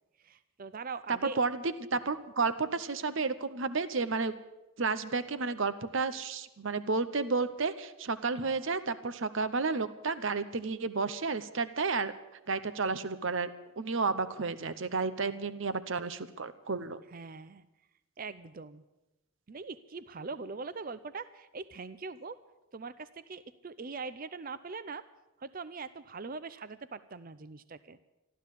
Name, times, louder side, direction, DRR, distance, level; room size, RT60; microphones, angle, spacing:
voice 1, 0.2-1.4 17.1-17.6 18.2-18.8 19.5-22.4 22.7-25.0 25.4-28.0, right 4 dB, 40° right, 15 dB, 0.5 m, -42 dB
voice 2, 1.4-4.3 4.8-12.1 12.5-13.5 13.8-17.0, right 4 dB, 60° right, 13 dB, 0.8 m, -32 dB
14.5 x 12.0 x 8.3 m, 0.97 s
head